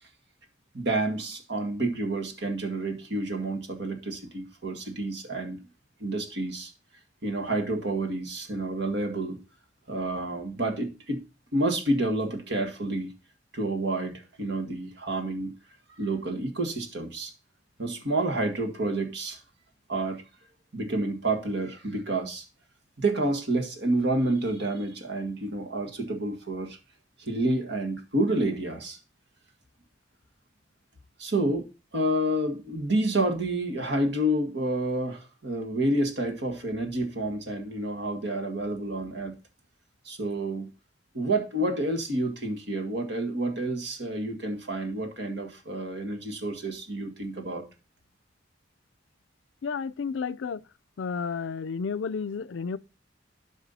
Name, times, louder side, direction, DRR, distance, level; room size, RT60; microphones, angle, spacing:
voice 1, 0.7-5.6 6.0-6.7 7.2-9.4 9.9-11.2 11.5-13.1 13.5-15.6 16.0-17.3 17.8-19.4 19.9-20.2 20.7-22.4 23.0-26.8 27.2-29.0 31.2-39.4 40.1-40.7 41.1-47.7, right 1 dB, 65° right, 1.8 m, -29 dB
voice 2, 49.6-50.6 51.0-52.8, left 5 dB, 80° left, 0.4 m, -31 dB
12.0 x 4.9 x 4.1 m
head